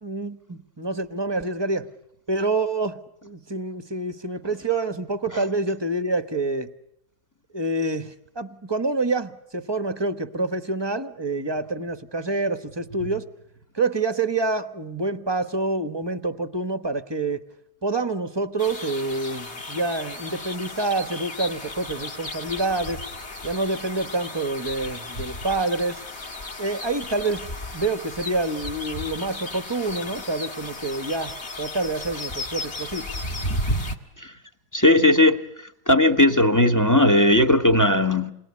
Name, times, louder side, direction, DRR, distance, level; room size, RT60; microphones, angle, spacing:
voice 1, 0.0-1.9 2.3-6.7 7.5-13.2 13.7-17.4 17.8-23.0 23.4-26.0 26.6-33.1, right 2 dB, 20° right, 0.9 m, -27 dB
sound 1, 18.6-34.0, left 1 dB, 35° left, 2.3 m, -34 dB
voice 2, 34.7-35.4 35.9-38.3, left 1 dB, 15° left, 0.9 m, -18 dB
28.5 x 21.5 x 9.7 m
omnidirectional pair, 2.0 m